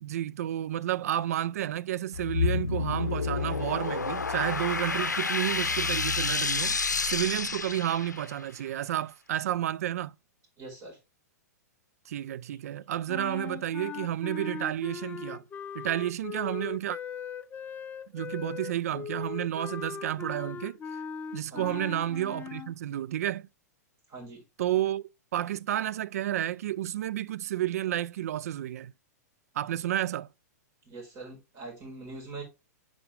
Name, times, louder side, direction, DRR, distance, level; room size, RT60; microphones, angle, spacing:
voice 1, 0.0-10.1 12.1-15.4 15.7-17.0 18.1-20.8 21.3-23.5 24.6-25.0 25.3-28.9 29.6-30.3, right 12 dB, 60° right, 0.3 m, -31 dB
sound 1, 2.1-8.4, left 5 dB, 85° left, 0.6 m, -29 dB
voice 2, 10.6-11.0 21.5-21.8 24.1-24.4 30.8-32.4, right 3 dB, 30° right, 4.9 m, -43 dB
sound 2, 13.1-22.7, left 7 dB, 20° left, 0.5 m, -39 dB
8.5 x 5.1 x 3.2 m
figure-of-eight pair, 105°, 9 cm